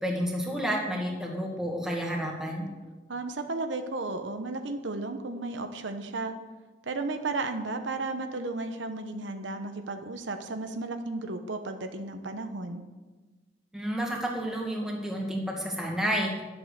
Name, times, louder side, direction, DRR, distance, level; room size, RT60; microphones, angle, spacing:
voice 1, 0.0-2.7 13.7-16.3, equal, 5° right, -1 dB, 2.0 m, -30 dB
voice 2, 3.1-6.3 6.8-12.8, right 3 dB, 80° right, 7 dB, 0.9 m, -34 dB
11.0 x 7.9 x 6.6 m, 1.2 s
head